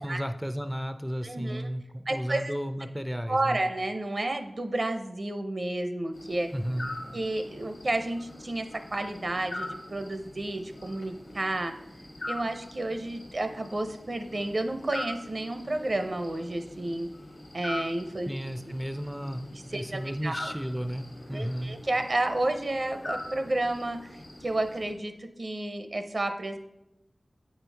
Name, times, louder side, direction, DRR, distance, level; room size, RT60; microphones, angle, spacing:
voice 1, 0.0-3.6 6.5-6.9 18.3-21.7, equal, 5° right, 8 dB, 0.3 m, -33 dB
voice 2, 1.2-1.7 2.1-2.5 3.3-6.5 7.1-11.8 12.3-17.1 17.5-18.3 19.7-20.5 21.3-26.6, right 2 dB, 60° right, 7 dB, 0.6 m, -31 dB
sound 1, 6.1-24.9, left 2 dB, 70° left, 1.0 m, -43 dB
8.5 x 4.5 x 3.4 m, 0.89 s
wide cardioid pair, 65°, 0 cm